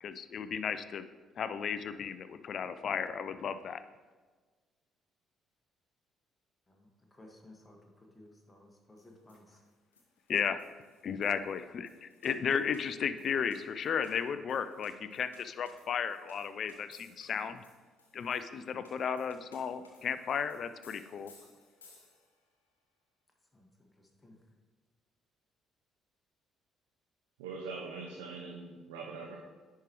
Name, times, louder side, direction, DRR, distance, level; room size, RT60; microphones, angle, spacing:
voice 1, 0.0-1.0 1.4-3.8 10.3-10.6 11.0-17.6 18.1-21.3, left 7 dB, 50° left, 12 dB, 0.4 m, -34 dB
voice 2, 6.7-9.6 23.5-24.5, left 1 dB, 20° left, 1 dB, 1.6 m, -58 dB
sound 1, 9.0-22.5, left 3 dB, 85° left, 0.8 m, -62 dB
voice 3, 27.4-29.4, right 4 dB, 75° right, -1 dB, 0.7 m, -42 dB
10.0 x 4.7 x 3.0 m, 1.4 s
figure-of-eight pair, 45°, 0 cm